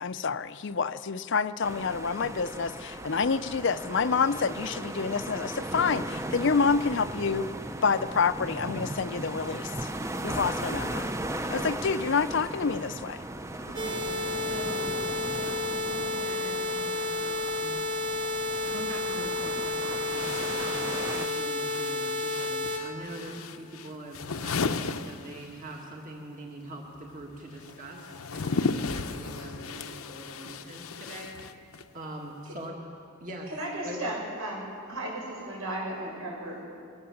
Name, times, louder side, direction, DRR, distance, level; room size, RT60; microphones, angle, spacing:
voice 1, 0.0-7.5 7.8-9.7 10.2-11.1 11.5-13.2, left 5 dB, 55° left, 14 dB, 0.5 m, -28 dB
sound 1, 1.6-21.3, right 1 dB, 15° right, 0.6 m, -37 dB
voice 2, 13.6-17.9 18.5-31.4 31.9-32.7 33.2-33.5 33.8-34.0, right 1 dB, 40° right, 0 dB, 2.0 m, -43 dB
sound 2, 13.7-22.8, left 2 dB, 60° right, 2.7 m, -31 dB
sound 3, 20.0-25.9 26.1-32.0, left 4 dB, 85° left, 0.8 m, -35 dB
voice 3, 33.5-36.6, right 1 dB, 85° right, -2 dB, 7.1 m, -35 dB
21.5 x 18.5 x 7.2 m, 2.4 s
head